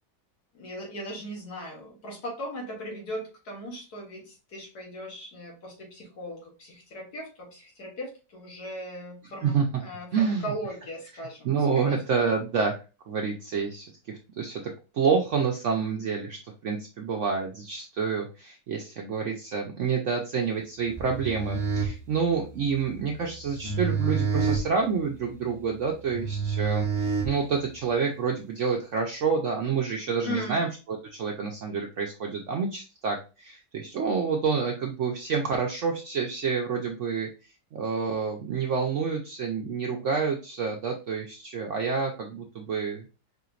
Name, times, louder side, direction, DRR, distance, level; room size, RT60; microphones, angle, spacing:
voice 1, 0.5-9.5 9.8-11.5 11.8-12.3 30.2-30.6, equal, 65° left, -1 dB, 1.9 m, -38 dB
voice 2, 10.1-10.5 11.4-12.7 13.0-26.9 27.2-37.3 37.7-43.1, right 5 dB, 65° right, 1 dB, 0.7 m, -28 dB
sound 1, 20.9-27.8, right 5 dB, 40° right, 0.3 m, -30 dB
4.9 x 2.9 x 2.4 m, 0.31 s
omnidirectional pair, 1.8 m